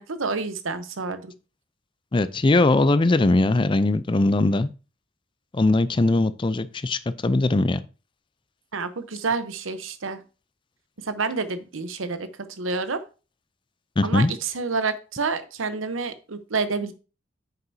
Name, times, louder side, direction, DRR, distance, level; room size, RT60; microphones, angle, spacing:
voice 1, 0.0-1.3 8.7-10.2 11.0-13.0 14.0-16.9, right 4 dB, 90° right, 0.9 m, -28 dB
voice 2, 2.1-4.7 5.5-7.8 14.0-14.3, left 2 dB, 25° left, 0.4 m, -20 dB
9.0 x 6.7 x 2.7 m
head